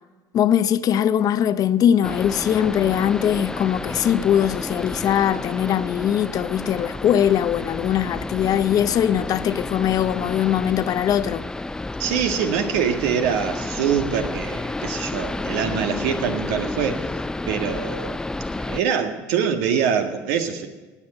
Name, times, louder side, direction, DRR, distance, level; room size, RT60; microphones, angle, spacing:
voice 1, 0.3-11.4, left 10 dB, 50° left, 0.7 m, -21 dB
sound 1, 2.0-18.8, left 2 dB, 10° left, 0.4 m, -31 dB
voice 2, 12.0-17.0 17.5-18.2 18.6-20.7, right 7 dB, 85° right, 1.7 m, -24 dB
19.0 x 7.4 x 7.9 m
supercardioid pair, 105°, 8 cm